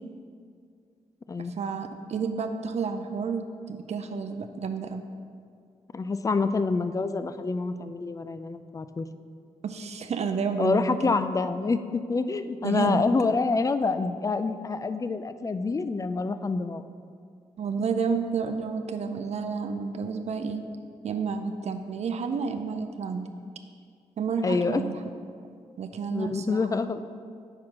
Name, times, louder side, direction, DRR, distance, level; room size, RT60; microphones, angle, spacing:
voice 1, 1.6-5.0 9.6-11.2 12.6-13.0 17.6-20.6 21.0-23.3 24.2-25.0 25.8-26.7, right 5 dB, 60° right, 7 dB, 0.5 m, -30 dB
voice 2, 5.9-9.1 10.6-16.8 24.4-24.8 26.1-27.0, left 4 dB, 25° left, 11 dB, 0.4 m, -27 dB
6.0 x 4.3 x 5.0 m, 2.2 s
supercardioid pair, 50°, 13 cm